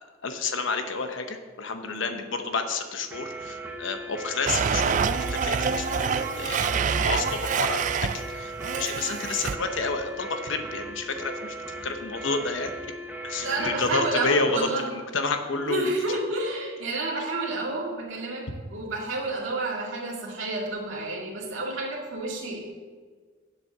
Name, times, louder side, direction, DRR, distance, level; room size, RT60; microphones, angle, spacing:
voice 1, 0.2-11.6 11.8-12.9 13.2-15.9, left 3 dB, 75° left, 6 dB, 0.9 m, -30 dB
voice 2, 1.8-2.2 13.4-14.9 15.7-22.6, right 2 dB, 80° right, -2 dB, 2.1 m, -30 dB
sound 1, 3.1-13.9, right 1 dB, 10° right, 0.9 m, -38 dB
Domestic sounds home sounds, 4.5-8.3 8.6-9.6, right 6 dB, 40° right, 0.3 m, -26 dB
7.5 x 7.3 x 6.0 m, 1.5 s
head